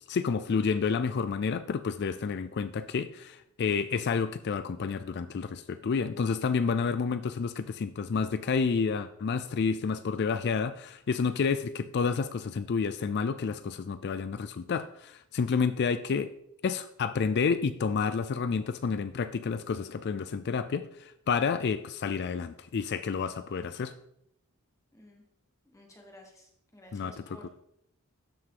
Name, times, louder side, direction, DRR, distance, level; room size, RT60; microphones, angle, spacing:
voice 1, 0.1-16.3 16.6-23.9 26.9-27.1, left 5 dB, 50° left, 12 dB, 0.4 m, -30 dB
voice 2, 24.9-25.2 25.7-27.5, left 1 dB, 15° left, 1 dB, 1.3 m, -53 dB
12.0 x 4.7 x 3.8 m, 0.74 s
head